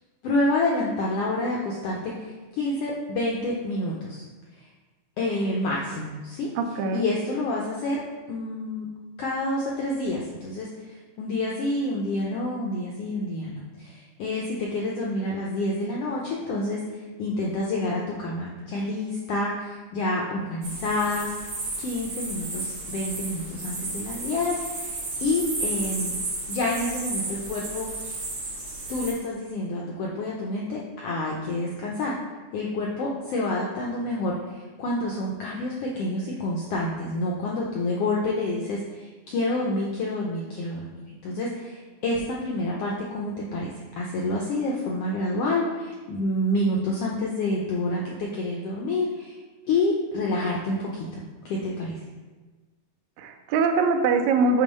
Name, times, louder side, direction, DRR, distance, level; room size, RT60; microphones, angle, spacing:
voice 1, 0.2-4.3 5.2-6.5 6.9-8.0 8.3-8.9 9.2-16.8 17.2-21.3 21.8-26.1 26.5-27.9 28.9-32.1 32.5-40.9 41.2-49.4 49.7-52.0, left 2 dB, 80° left, -3 dB, 1.3 m, -28 dB
voice 2, 6.6-7.1 53.2-54.6, right 4 dB, 80° right, 5 dB, 1.9 m, -22 dB
sound 1, 20.6-29.1, right 2 dB, 60° right, 2.6 m, -33 dB
6.5 x 3.0 x 5.2 m, 1.3 s
omnidirectional pair, 3.4 m